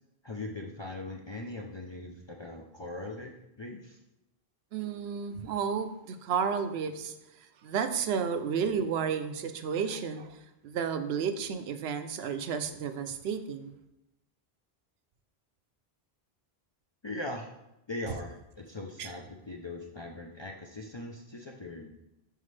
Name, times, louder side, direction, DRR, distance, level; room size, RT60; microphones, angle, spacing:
voice 1, 0.2-4.0 17.0-17.5 17.9-21.9, left 2 dB, 40° left, 0 dB, 0.4 m, -40 dB
voice 2, 4.7-7.1 7.6-13.7 19.0-19.1, right 6 dB, 80° right, 9 dB, 0.8 m, -32 dB
5.6 x 5.2 x 3.2 m, 0.89 s
omnidirectional pair, 1.0 m